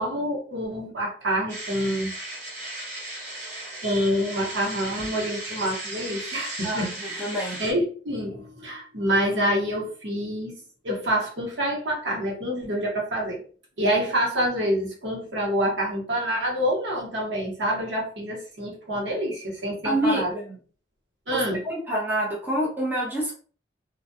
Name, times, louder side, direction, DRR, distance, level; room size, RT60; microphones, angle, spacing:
voice 1, 0.0-2.1 3.8-7.2 7.6-13.4 13.8-20.3 21.3-21.6, equal, 80° right, -3 dB, 1.1 m, -27 dB
sound 1, 1.5-7.7, right 1 dB, 40° right, 0.8 m, -36 dB
voice 2, 6.6-7.6 19.8-20.6 21.3-23.3, right 1 dB, 10° right, -4 dB, 0.6 m, -27 dB
2.4 x 2.3 x 2.6 m, 0.42 s
head